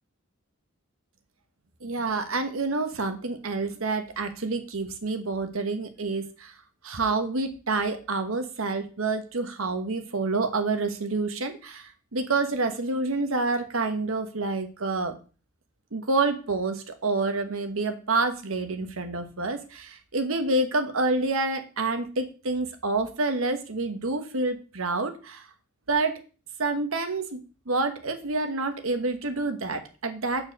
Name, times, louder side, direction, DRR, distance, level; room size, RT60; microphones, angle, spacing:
voice 1, 1.8-6.5 6.8-15.1 15.9-25.5 25.9-26.2 26.6-30.5, right 3 dB, 80° right, 7 dB, 1.2 m, -28 dB
6.6 x 4.6 x 6.4 m, 0.36 s
head